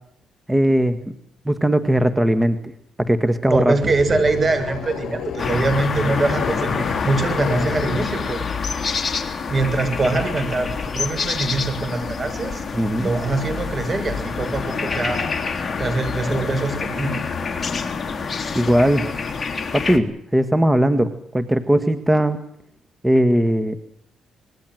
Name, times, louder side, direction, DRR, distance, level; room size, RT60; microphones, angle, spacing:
voice 1, 0.5-1.2 1.5-2.7 3.0-3.7 12.7-13.1 18.5-19.1 19.7-22.4 23.0-23.8, right 1 dB, 10° right, 10 dB, 1.7 m, -19 dB
sound 1, 3.5-8.2, left 7 dB, 65° left, 7.7 m, -31 dB
voice 2, 3.5-8.5 9.5-12.6 13.0-15.2 15.8-17.2, right 3 dB, 35° right, 10 dB, 7.0 m, -23 dB
sound 2, 5.4-20.0, left 5 dB, 35° left, 3.4 m, -27 dB
26.0 x 22.0 x 7.8 m, 0.72 s
cardioid pair, 90°, 0 cm